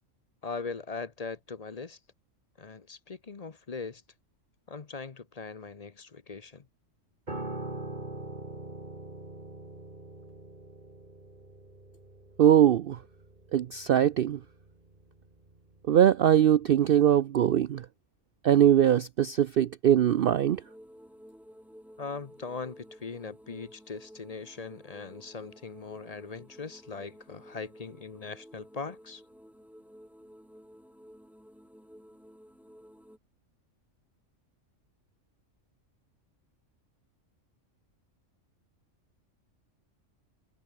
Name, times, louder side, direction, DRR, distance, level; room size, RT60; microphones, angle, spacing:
voice 1, 0.4-2.0 2.6-4.0 4.7-6.6 22.0-29.2, left 4 dB, 35° left, 0.9 m, -40 dB
Piano, 7.3-16.6 16.9-17.2, right 2 dB, 35° right, 3.5 m, -43 dB
voice 2, 12.4-13.0 13.5-14.4 15.9-17.9 18.4-20.6, right 10 dB, 60° right, 0.6 m, -22 dB
sound 1, 20.0-33.2, equal, ahead, 3.5 m, -53 dB
omnidirectional pair, 1.3 m